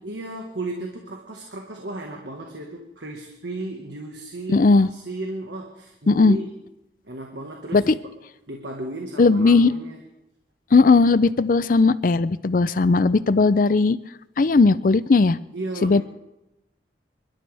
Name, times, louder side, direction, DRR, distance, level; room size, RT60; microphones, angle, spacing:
voice 1, 0.0-6.5 7.0-8.1 8.5-10.0 15.5-16.0, right 2 dB, 80° right, 2 dB, 1.6 m, -34 dB
voice 2, 4.5-4.9 6.1-6.4 7.7-7.9 9.2-9.7 10.7-14.0 14.4-15.4 15.8-16.0, left 3 dB, 50° left, 16 dB, 0.4 m, -17 dB
27.5 x 12.5 x 3.4 m, 0.92 s
head